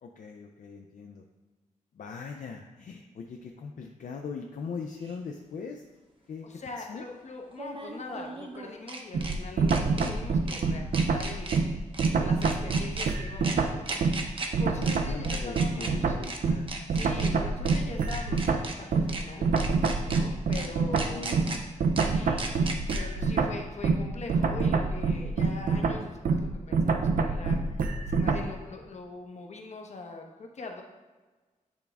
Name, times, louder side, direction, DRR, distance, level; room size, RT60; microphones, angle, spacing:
voice 1, 0.0-1.2 1.9-5.8 6.3-6.5 6.8-7.0 12.7-13.1 14.8-16.7 20.0-20.9 21.1-21.6, left 5 dB, 70° left, 2 dB, 0.4 m, -41 dB
sound 1, 5.1-5.2 7.5-9.4 9.7-10.1 10.5-10.6 10.9-11.6 11.9-12.1 12.4-13.1 13.4-13.6 13.9-14.5 14.8-15.0 15.2-15.9 16.2-16.4 16.7-17.3 17.7-17.8 18.1-18.7 19.1-19.2 19.6-20.2 20.5-20.7 21.0-21.6 22.0-22.1 22.4-23.0, right 3 dB, 40° right, 0.7 m, -36 dB
voice 2, 6.4-11.5 12.1-16.2 16.9-19.5 20.1-21.5 22.0-27.8 28.0-30.8, left 3 dB, 55° left, 2 dB, 0.9 m, -42 dB
sound 2, 9.1-14.3 14.5-28.5, right 4 dB, 80° right, 0.4 m, -26 dB
8.2 x 3.4 x 3.5 m, 1.3 s
wide cardioid pair, 120°, 14 cm